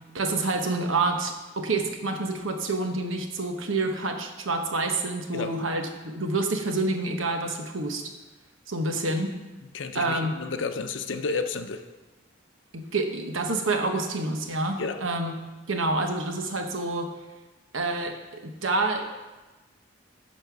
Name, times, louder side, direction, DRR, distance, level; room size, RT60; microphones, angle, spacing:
voice 1, 0.1-8.0 8.7-9.3 9.9-10.3 12.7-17.1 17.7-19.2, right 2 dB, 85° right, 4 dB, 1.1 m, -28 dB
voice 2, 9.7-11.8 14.8-15.0, left 4 dB, 70° left, 8 dB, 0.7 m, -31 dB
10.5 x 4.4 x 5.9 m, 1.1 s
head